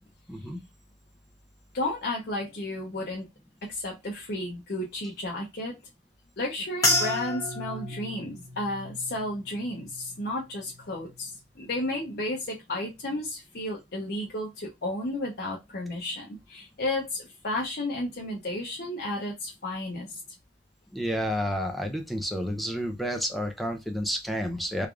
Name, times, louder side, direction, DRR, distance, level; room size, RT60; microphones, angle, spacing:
voice 1, 0.3-0.6 20.9-24.9, equal, ahead, 3 dB, 0.5 m, -30 dB
voice 2, 1.7-3.3 3.6-5.8 6.4-20.2, left 1 dB, 55° left, -1 dB, 0.7 m, -33 dB
sound 1, 6.8-11.4 11.7-12.3 12.9-13.2, left 1 dB, 20° left, 1.1 m, -32 dB
3.3 x 2.4 x 3.6 m, 0.21 s
head